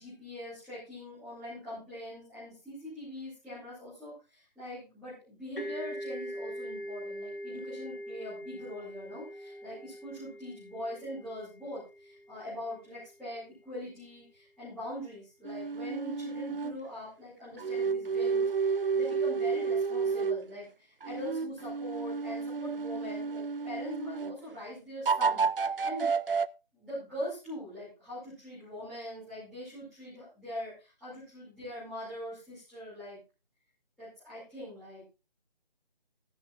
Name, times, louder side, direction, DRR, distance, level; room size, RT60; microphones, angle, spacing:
voice 1, 0.0-26.1 26.7-33.2 34.0-35.0, left 1 dB, ahead, -17 dB, 2.6 m, -42 dB
sound 1, 5.6-13.1, equal, 65° left, 2.8 m, -42 dB
sound 2, 15.5-16.8 17.6-20.5 21.0-24.4 25.1-26.5, right 5 dB, 65° right, 0.5 m, -31 dB
14.0 x 10.5 x 2.5 m, 0.29 s
figure-of-eight pair, 160°, 30 cm